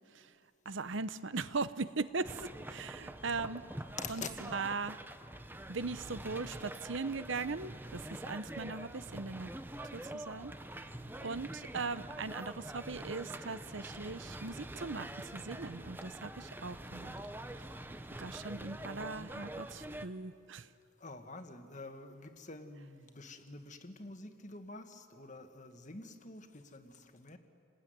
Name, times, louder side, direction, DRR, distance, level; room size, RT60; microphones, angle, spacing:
voice 1, 0.6-3.7 4.1-4.2 4.5-5.0 5.7-9.5 9.9-10.5 11.2-17.1 18.2-20.7, right 4 dB, 65° right, 14 dB, 0.8 m, -39 dB
sound 1, 2.2-20.1, right 1 dB, 10° right, 0.9 m, -45 dB
voice 2, 4.0-4.3 21.0-27.4, left 3 dB, 35° left, 7 dB, 1.7 m, -47 dB
28.5 x 20.0 x 9.6 m, 2.4 s
head